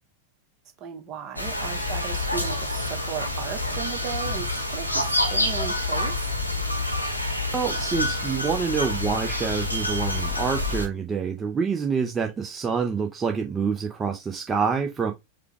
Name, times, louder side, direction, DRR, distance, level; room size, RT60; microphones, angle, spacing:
voice 1, 0.8-6.3, right 7 dB, 35° right, 1.1 m, -36 dB
sound 1, 1.4-10.9, left 1 dB, 90° left, 1.0 m, -27 dB
voice 2, 7.5-15.1, right 5 dB, 20° right, 0.7 m, -27 dB
4.9 x 2.2 x 3.5 m
figure-of-eight pair, 90°, 0 cm